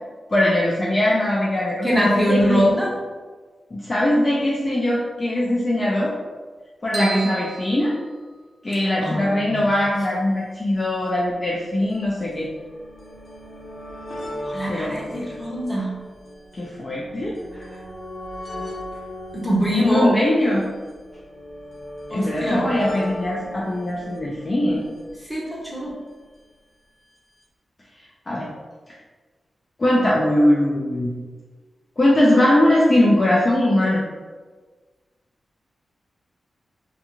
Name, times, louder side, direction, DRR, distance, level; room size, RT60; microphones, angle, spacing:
voice 1, 0.3-2.7 3.7-6.1 6.8-7.9 8.6-12.5 14.7-15.2 16.5-17.4 19.8-20.7 22.1-24.8 28.3-28.5 29.8-31.1 32.0-34.0, left 1 dB, 25° left, -5 dB, 0.3 m, -21 dB
voice 2, 1.8-2.9 6.9-7.3 9.0-9.7 14.4-15.9 19.3-20.1 22.1-22.7 25.2-25.9, equal, ahead, -6 dB, 0.7 m, -23 dB
sound 1, 6.9-8.7, right 4 dB, 50° right, 0.6 m, -35 dB
sound 2, 9.7-9.8 10.0-10.1 10.9-26.2 27.2-27.3 27.4-27.5, equal, 50° left, 0.8 m, -38 dB
2.4 x 2.3 x 2.9 m, 1.4 s
wide cardioid pair, 155°, 0 cm